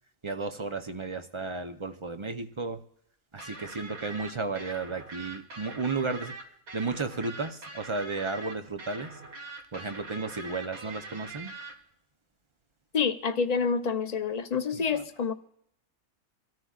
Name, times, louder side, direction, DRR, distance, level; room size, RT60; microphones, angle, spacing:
voice 1, 0.2-2.8 3.3-6.3 6.7-9.1 9.7-11.5 14.7-15.0, right 3 dB, 35° right, 0.5 m, -33 dB
sound 1, 3.4-11.7, right 3 dB, 85° right, 2.1 m, -43 dB
voice 2, 12.9-15.3, left 5 dB, 40° left, 0.6 m, -28 dB
26.0 x 13.5 x 2.4 m
omnidirectional pair, 1.5 m